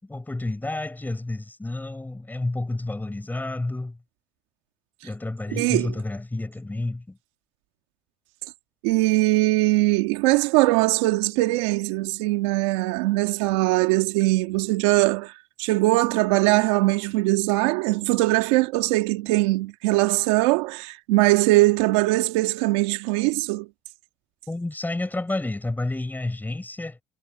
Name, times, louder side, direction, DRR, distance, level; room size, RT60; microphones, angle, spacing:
voice 1, 0.0-4.0 5.0-7.2 24.5-27.0, left 2 dB, 10° left, 6.4 m, -30 dB
voice 2, 5.5-5.9 8.8-15.3 15.6-23.7, right 20 dB, 80° right, 2.0 m, -21 dB
supercardioid pair, 85°, 15 cm